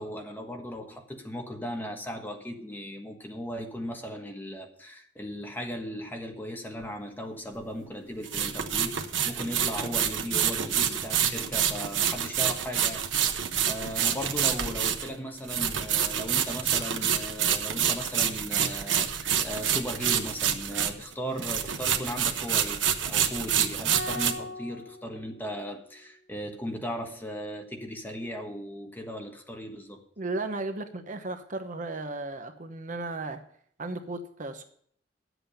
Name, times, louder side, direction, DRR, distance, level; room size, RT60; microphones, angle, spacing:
voice 1, 0.0-30.0, equal, 10° left, 1.5 m, -37 dB
sound 1, 6.8-6.9 8.2-21.1 21.4-24.3, right 8 dB, 85° right, 1.1 m, -27 dB
sound 2, 23.9-26.2, left 2 dB, 80° left, 2.6 m, -40 dB
voice 2, 30.2-33.4 33.8-34.6, right 2 dB, 45° right, 0.9 m, -35 dB
11.0 x 8.0 x 6.8 m
head